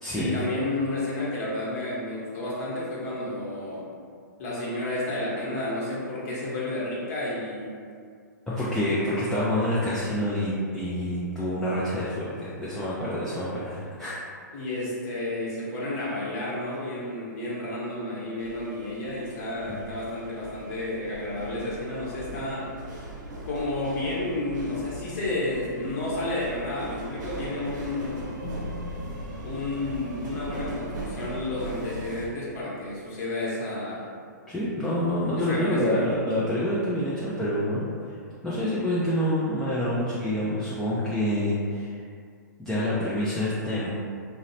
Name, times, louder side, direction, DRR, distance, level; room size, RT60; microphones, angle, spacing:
voice 1, 0.1-3.9 4.4-7.7 14.5-22.7 23.4-28.3 29.4-34.1 35.4-36.0, left 2 dB, 50° left, -6 dB, 1.0 m, -31 dB
voice 2, 8.5-14.2 34.5-38.2 38.4-42.0 42.6-43.9, left 1 dB, 5° left, -9 dB, 0.3 m, -27 dB
sound 1, 18.4-32.3, right 1 dB, 65° right, 0.6 m, -39 dB
sound 2, 28.4-32.6, left 2 dB, 90° left, 0.6 m, -42 dB
2.7 x 2.0 x 2.7 m, 2.2 s
hypercardioid pair, 130°, 10 cm